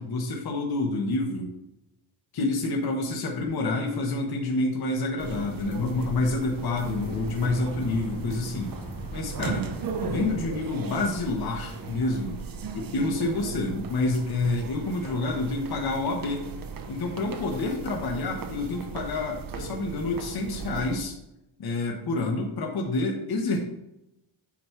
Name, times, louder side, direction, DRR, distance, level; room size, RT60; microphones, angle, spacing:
voice 1, 0.0-1.5 2.3-8.7 9.1-9.7 10.0-12.4 12.7-16.5 16.9-21.2 21.6-23.6, left 2 dB, 50° left, 1 dB, 1.2 m, -28 dB
sound 1, 5.2-21.0, right 4 dB, 45° right, 0.8 m, -37 dB
sound 2, 6.8-12.4, left 2 dB, 15° left, 0.9 m, -44 dB
8.5 x 3.1 x 5.7 m, 0.87 s
wide cardioid pair, 135°, 47 cm